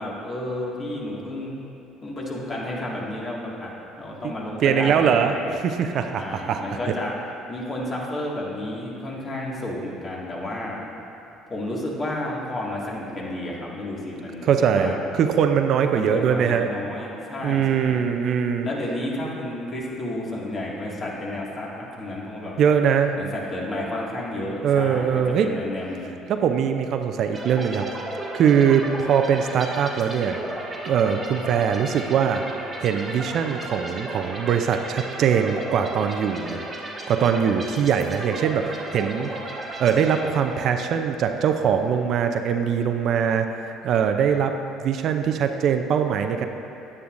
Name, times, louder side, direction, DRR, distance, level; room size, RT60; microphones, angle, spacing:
voice 1, 0.0-1.6 2.0-3.7 4.0-5.6 6.1-7.1 7.5-10.8 11.5-15.1 15.9-18.0 18.6-22.6 23.1-26.1, left 1 dB, 40° left, -4 dB, 2.0 m, -31 dB
voice 2, 4.6-5.3 5.6-6.8 14.4-16.7 17.4-18.7 22.6-23.1 24.6-25.5 26.3-27.9 28.3-30.4 30.8-32.4 32.8-36.6 37.1-39.3 39.8-44.5 44.8-46.5, right 7 dB, 60° right, 6 dB, 0.5 m, -22 dB
sound 1, 27.3-40.9, right 2 dB, 25° right, 1.4 m, -35 dB
9.7 x 9.5 x 2.6 m, 2.8 s
hypercardioid pair, 65°, 0 cm